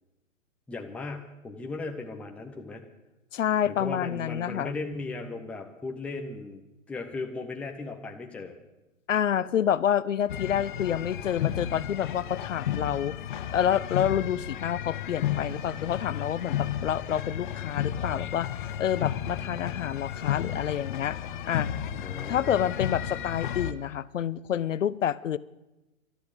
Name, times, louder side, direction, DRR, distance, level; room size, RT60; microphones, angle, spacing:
voice 1, 0.7-2.8 3.7-6.6 6.9-8.6 22.0-22.6, left 3 dB, 5° left, 3 dB, 0.7 m, -37 dB
voice 2, 3.3-4.7 9.1-13.2 13.5-21.2 21.5-21.7 22.0-25.4, left 9 dB, 65° left, 18 dB, 0.7 m, -28 dB
sound 1, 10.3-23.7, left 10 dB, 40° left, 0.9 m, -33 dB
12.5 x 12.5 x 8.2 m, 1.0 s
hypercardioid pair, 135°, 41 cm